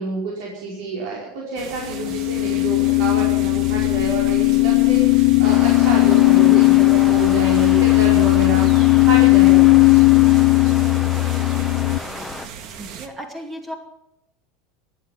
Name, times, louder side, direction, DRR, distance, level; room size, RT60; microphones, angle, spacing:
voice 1, 0.0-10.1, right 3 dB, 65° right, -3 dB, 5.1 m, -28 dB
sound 1, 1.6-13.1, right 7 dB, 50° right, 1.8 m, -37 dB
sound 2, 1.9-12.0, left 25 dB, 75° left, 0.6 m, -16 dB
sound 3, 5.4-12.5, left 3 dB, 10° left, 1.0 m, -33 dB
voice 2, 6.5-7.0 12.7-13.8, right 1 dB, 15° right, 3 dB, 2.6 m, -35 dB
14.5 x 9.9 x 9.7 m, 0.87 s
supercardioid pair, 135°, 0 cm